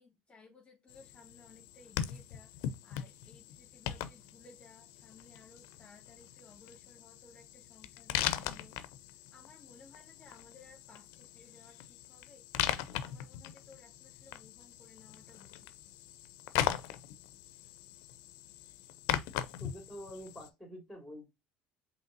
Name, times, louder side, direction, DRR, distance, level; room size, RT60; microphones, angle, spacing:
voice 1, 0.0-12.6 13.0-15.7, left 3 dB, 25° left, 1.2 m, -59 dB
sound 1, 0.9-20.5, left 12 dB, 75° left, 0.5 m, -40 dB
voice 2, 19.6-21.2, equal, ahead, 2.2 m, -47 dB
5.0 x 3.3 x 2.5 m
supercardioid pair, 100°, 5 cm